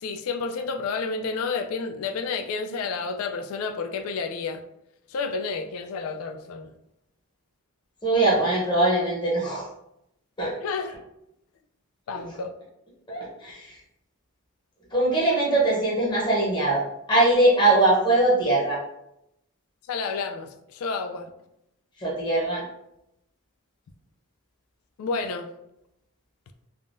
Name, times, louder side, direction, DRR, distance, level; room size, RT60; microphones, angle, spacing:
voice 1, 0.0-4.6 5.1-6.7 10.6-11.0 12.1-12.5 19.9-21.3 25.0-25.5, left 4 dB, 75° left, 7 dB, 0.3 m, -30 dB
voice 2, 8.0-9.6 10.4-10.5 13.1-13.7 14.9-18.8 22.0-22.6, right 2 dB, 20° left, -6 dB, 0.7 m, -21 dB
3.5 x 2.2 x 2.5 m, 0.82 s
head